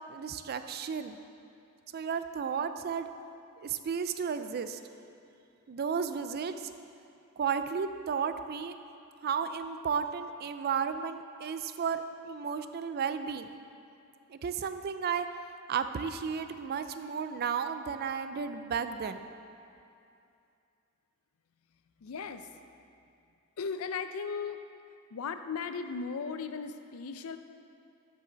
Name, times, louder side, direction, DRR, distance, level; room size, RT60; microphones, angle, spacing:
voice 1, 0.1-1.2 1.9-3.1 3.6-4.8 5.7-6.5 7.4-8.8 9.2-13.5 14.3-15.3 15.7-19.2, right 6 dB, 45° right, 10 dB, 0.4 m, -33 dB
voice 2, 22.0-22.5 23.6-24.6 25.1-27.4, left 5 dB, 75° left, 9 dB, 0.5 m, -36 dB
12.0 x 5.6 x 4.0 m, 2.6 s
head